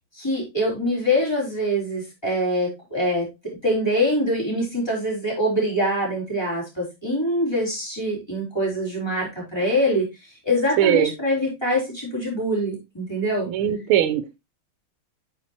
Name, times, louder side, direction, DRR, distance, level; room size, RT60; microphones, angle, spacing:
voice 1, 0.1-13.5, equal, 10° left, -4 dB, 3.8 m, -24 dB
voice 2, 10.8-11.1 13.5-14.4, right 11 dB, 75° right, 12 dB, 1.6 m, -20 dB
8.5 x 6.4 x 2.9 m, 0.22 s
omnidirectional pair, 2.4 m